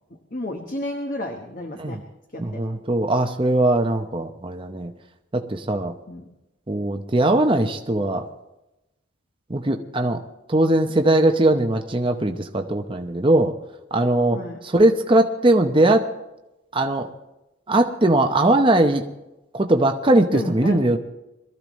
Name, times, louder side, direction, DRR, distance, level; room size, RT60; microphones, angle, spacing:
voice 1, 0.3-2.0 2.3-2.6 6.1-6.2 14.3-14.6 20.3-21.0, left 1 dB, 45° left, 3 dB, 1.2 m, -32 dB
voice 2, 2.4-4.9 5.3-5.9 6.7-8.3 9.5-10.2 10.5-13.5 13.9-16.1 16.7-17.1 17.7-19.1 19.5-21.0, right 1 dB, 25° right, 4 dB, 0.8 m, -20 dB
22.0 x 13.5 x 3.1 m, 0.95 s
head